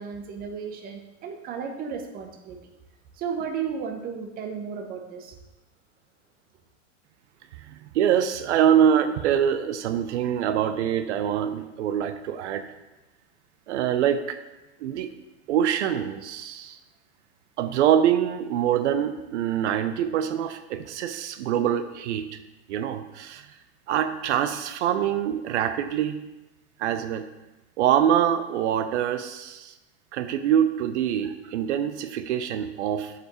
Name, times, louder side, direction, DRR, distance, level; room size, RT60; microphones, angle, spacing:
voice 1, 0.0-2.6 3.1-5.4, right 6 dB, 25° right, 4 dB, 0.7 m, -34 dB
voice 2, 7.7-12.6 13.7-14.4 14.8-15.1 15.5-16.8 17.6-22.3 22.7-23.5 23.9-26.2 26.8-27.3 27.8-29.7 30.1-33.1, right 9 dB, 75° right, 10 dB, 0.6 m, -24 dB
8.1 x 4.9 x 3.0 m, 1.0 s
supercardioid pair, 140°, 35 cm